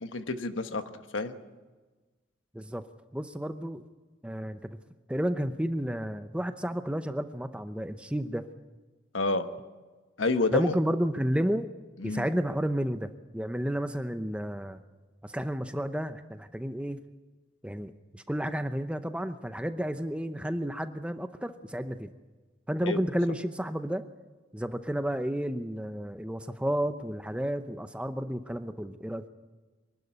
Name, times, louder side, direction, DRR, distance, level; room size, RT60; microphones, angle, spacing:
voice 1, 0.0-1.4 9.1-9.5 10.2-10.8 12.0-12.3 22.8-23.0, left 3 dB, 85° left, 8 dB, 1.3 m, -29 dB
voice 2, 2.5-2.9 3.1-3.8 4.2-4.8 5.1-8.5 10.5-11.7 12.0-14.8 15.2-17.0 17.6-22.1 22.7-24.0 24.5-29.3, equal, 5° right, 9 dB, 0.7 m, -31 dB
24.0 x 12.0 x 9.9 m, 1.3 s
head